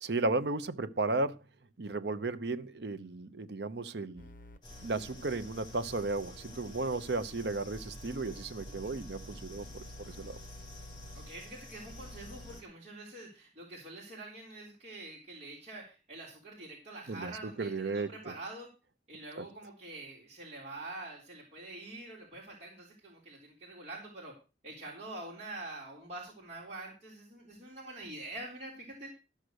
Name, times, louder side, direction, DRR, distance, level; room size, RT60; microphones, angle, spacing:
voice 1, 0.0-1.4 1.8-4.3 4.8-10.4 17.1-17.3 17.6-18.3 19.4-19.5, right 3 dB, 70° right, 0.8 m, -34 dB
sound 1, 4.2-11.3 11.9-12.6, left 1 dB, 50° left, 1.3 m, -51 dB
sound 2, 4.6-12.6, left 1 dB, 25° left, 4.1 m, -50 dB
voice 2, 11.1-18.7 19.1-24.4 24.6-29.1, right 2 dB, 40° right, 3.6 m, -46 dB
13.5 x 6.5 x 6.4 m
head